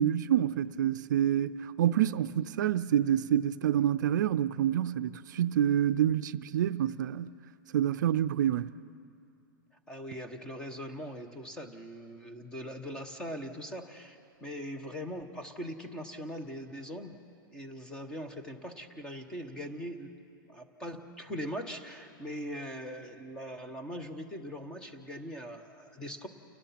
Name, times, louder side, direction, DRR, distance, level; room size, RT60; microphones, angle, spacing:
voice 1, 0.0-7.3 7.7-8.7, right 10 dB, 60° right, 0.5 m, -27 dB
voice 2, 9.9-17.2 17.5-20.2 20.5-26.3, equal, 5° left, 1.1 m, -41 dB
29.5 x 18.5 x 5.9 m
supercardioid pair, 175°, 11 cm